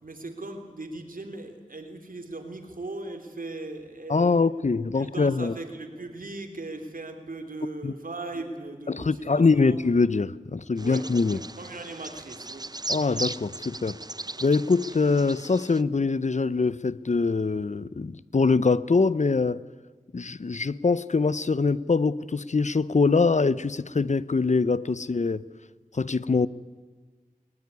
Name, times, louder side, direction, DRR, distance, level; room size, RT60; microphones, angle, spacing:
voice 1, 0.0-4.5 4.9-9.8 10.8-12.6, right 2 dB, 80° right, 3.3 m, -39 dB
voice 2, 4.1-5.5 7.8-7.9 8.9-11.4 12.9-14.0 14.4-19.6 20.1-25.5 25.9-26.5, left 4 dB, 55° left, 0.8 m, -23 dB
Bird vocalization bird call bird song, 10.8-15.8, right 2 dB, 30° right, 0.7 m, -37 dB
20.5 x 20.5 x 9.8 m
wide cardioid pair, 40°, 14 cm